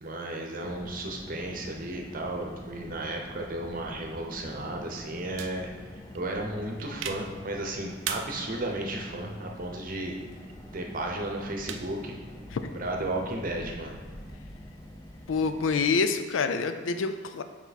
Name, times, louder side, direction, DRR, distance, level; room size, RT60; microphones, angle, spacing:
voice 1, 0.0-5.7 6.1-10.2 10.7-12.2 12.8-14.0, right 1 dB, 45° right, 1 dB, 0.8 m, -34 dB
Car, 0.6-15.8, equal, 20° left, 0.5 m, -45 dB
sound 1, 5.4-12.9, right 8 dB, 80° right, 0.4 m, -43 dB
voice 2, 15.3-17.4, left 4 dB, 85° left, 8 dB, 0.4 m, -27 dB
5.8 x 4.4 x 4.1 m, 1.5 s
head